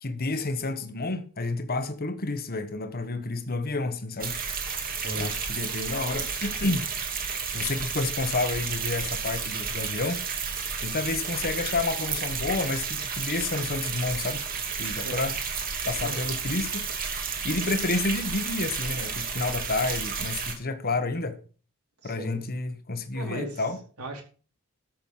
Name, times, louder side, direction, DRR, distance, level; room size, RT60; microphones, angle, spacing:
voice 1, 0.0-4.4 5.2-6.9 7.5-10.2 10.8-14.4 14.8-15.3 15.9-17.0 17.4-21.4 22.0-23.8, left 3 dB, 45° left, 1.3 m, -30 dB
sound 1, 4.2-20.5, right 5 dB, 40° right, 2.6 m, -32 dB
voice 2, 14.9-15.2 15.8-16.2 22.0-22.4 23.1-23.6 24.0-24.2, right 1 dB, 85° right, 4.4 m, -37 dB
13.5 x 6.4 x 5.8 m
head